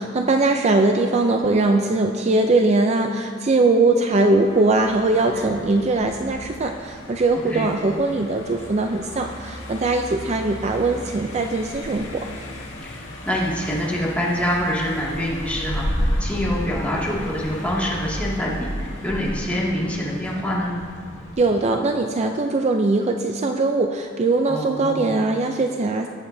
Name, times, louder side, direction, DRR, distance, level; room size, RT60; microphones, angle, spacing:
voice 1, 0.0-12.3 21.4-26.1, right 2 dB, 35° right, 4 dB, 0.4 m, -21 dB
Car passing by, 4.1-21.6, equal, 75° left, 1.8 m, -33 dB
voice 2, 12.8-20.7 24.4-25.1, equal, 5° left, -6 dB, 2.2 m, -26 dB
19.5 x 7.9 x 2.7 m, 2.1 s
head